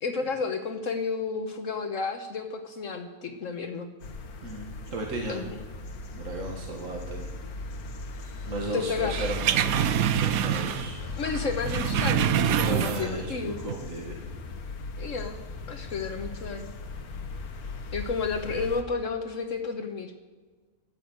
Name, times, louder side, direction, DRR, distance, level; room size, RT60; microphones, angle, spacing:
voice 1, 0.0-3.9 5.3-5.6 8.7-9.3 11.2-12.2 12.7-13.6 15.0-15.4 15.7-16.7 17.9-20.1, left 4 dB, 65° left, 6 dB, 1.3 m, -31 dB
sound 1, 4.0-18.8, left 3 dB, 85° left, 1.7 m, -38 dB
voice 2, 4.4-5.4 6.1-7.3 8.5-11.0 12.4-14.2, right 2 dB, 60° right, 0 dB, 2.2 m, -35 dB
sound 2, 9.0-11.0 11.3-13.3 13.6-13.7, right 9 dB, 80° right, 1.1 m, -26 dB
13.0 x 10.5 x 8.0 m, 1.4 s
omnidirectional pair, 1.5 m